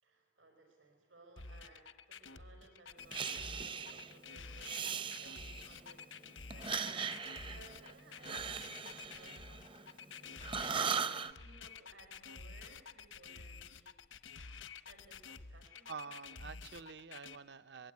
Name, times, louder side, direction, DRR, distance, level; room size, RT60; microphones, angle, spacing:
voice 1, 0.0-4.9 5.2-14.0 14.4-15.9, right 3 dB, 85° right, 3 dB, 5.4 m, -61 dB
sound 1, 1.4-17.4, left 5 dB, 80° left, 1.0 m, -50 dB
Breathing, 3.1-4.1 4.6-5.8 6.5-10.1 10.4-11.3, right 6 dB, 25° right, 0.7 m, -39 dB
voice 2, 15.9-17.9, right 5 dB, 60° right, 14 dB, 0.9 m, -48 dB
24.5 x 22.0 x 9.6 m, 1.3 s
head